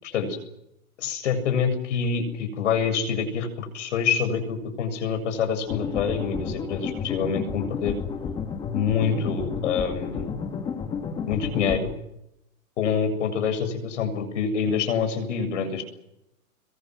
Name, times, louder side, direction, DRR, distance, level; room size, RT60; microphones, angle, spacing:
voice 1, 0.0-0.4 1.0-8.0 8.7-10.4 11.3-11.9 12.8-15.8, left 6 dB, 55° left, 8 dB, 7.6 m, -26 dB
sound 1, 5.7-11.8, left 6 dB, 10° left, 1.4 m, -31 dB
27.5 x 23.0 x 7.8 m, 0.84 s
hypercardioid pair, 165°, 42 cm